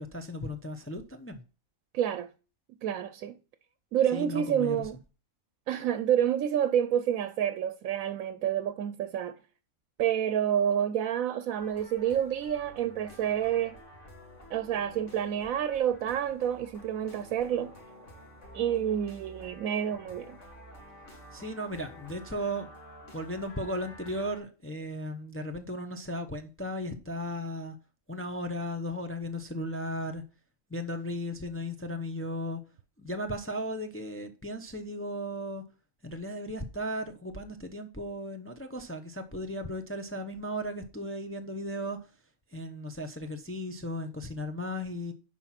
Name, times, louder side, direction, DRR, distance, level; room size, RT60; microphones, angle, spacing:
voice 1, 0.0-1.4 4.1-4.9 21.3-22.7 23.1-27.7 28.1-30.2 30.7-32.6 33.0-35.6 36.0-42.1 42.5-45.1, equal, 10° left, 0.7 m, -36 dB
voice 2, 1.9-2.3 2.8-3.4 3.9-5.0 5.7-9.4 10.0-13.7 14.5-17.7 18.5-20.4, right 10 dB, 85° right, 1.1 m, -28 dB
sound 1, 11.6-24.4, equal, 60° left, 2.6 m, -50 dB
10.5 x 4.5 x 5.8 m
omnidirectional pair, 1.4 m